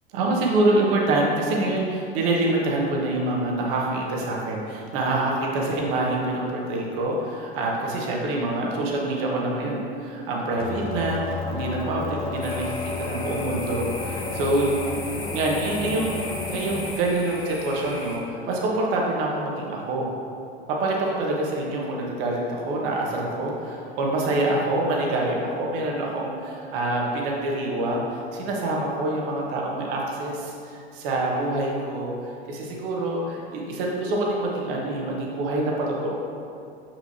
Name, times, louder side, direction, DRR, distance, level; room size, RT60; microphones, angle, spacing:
voice 1, 0.1-14.7 15.3-20.1 20.7-32.1 32.5-36.2, right 2 dB, 60° right, -2 dB, 1.3 m, -26 dB
sound 1, 10.6-16.9, left 4 dB, 30° left, 0.8 m, -32 dB
sound 2, 12.4-18.2, left 2 dB, 15° left, 1.5 m, -37 dB
6.2 x 6.0 x 2.8 m, 2.5 s
hypercardioid pair, 90°, 31 cm